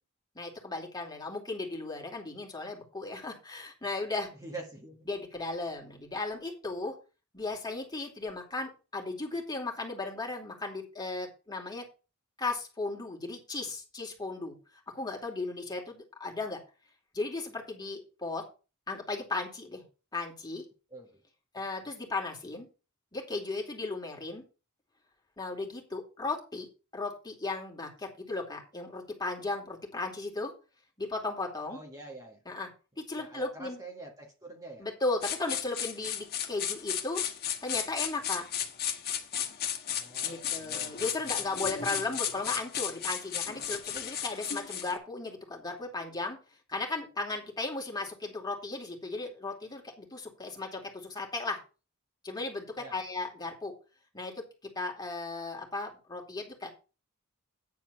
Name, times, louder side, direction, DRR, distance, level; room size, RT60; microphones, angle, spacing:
voice 1, 0.3-4.3 5.1-6.9 7.3-11.9 12.4-14.6 14.9-16.6 17.1-18.4 18.9-19.8 20.1-20.6 21.5-22.7 23.1-24.4 25.4-26.7 26.9-30.5 31.0-31.8 32.4-32.7 33.0-33.8 34.8-37.2 37.6-38.4 40.2-46.4 46.7-51.6 52.2-53.7 54.1-54.4 54.8-56.7, left 3 dB, 20° left, 2.7 m, -36 dB
voice 2, 4.4-5.0 20.9-21.1 31.7-32.4 33.2-34.9 39.9-41.0 52.8-53.0, right 2 dB, 15° right, 1.7 m, -46 dB
sound 1, 35.2-45.0, left 9 dB, 50° left, 1.7 m, -34 dB
9.8 x 4.3 x 7.1 m
head